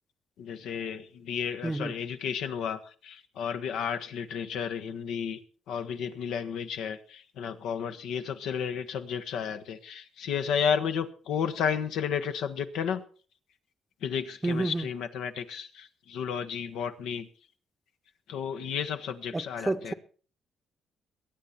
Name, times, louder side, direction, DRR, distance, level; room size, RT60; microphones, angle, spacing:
voice 1, 0.4-5.4 5.7-13.0 14.0-17.3 18.3-19.9, left 7 dB, 85° left, 1.2 m, -32 dB
voice 2, 1.6-1.9 14.4-14.9 19.3-19.9, right 2 dB, 15° right, 0.7 m, -30 dB
22.5 x 8.7 x 4.3 m
cardioid pair, 90°, 0 cm